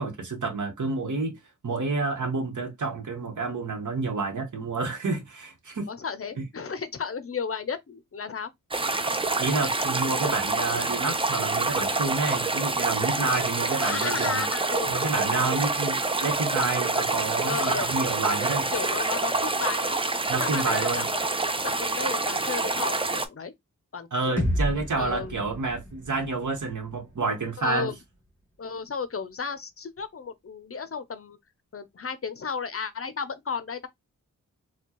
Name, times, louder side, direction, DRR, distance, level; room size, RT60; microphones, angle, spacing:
voice 1, 0.0-1.3 1.6-5.9 6.4-6.5 9.4-14.5 14.9-18.7 20.3-21.1 24.1-27.9, right 3 dB, 65° right, 1.2 m, -29 dB
voice 2, 5.9-8.5 13.8-15.3 17.4-17.9 18.7-20.0 20.3-21.2 21.6-23.5 23.9-24.4 25.0-25.4 27.6-28.0 28.6-31.4 31.7-33.9, left 5 dB, 45° left, 0.5 m, -33 dB
sound 1, 8.7-23.3, right 3 dB, 15° right, 0.5 m, -27 dB
sound 2, 24.4-28.3, equal, 5° left, 1.5 m, -32 dB
4.3 x 2.3 x 2.9 m
cardioid pair, 65°, 33 cm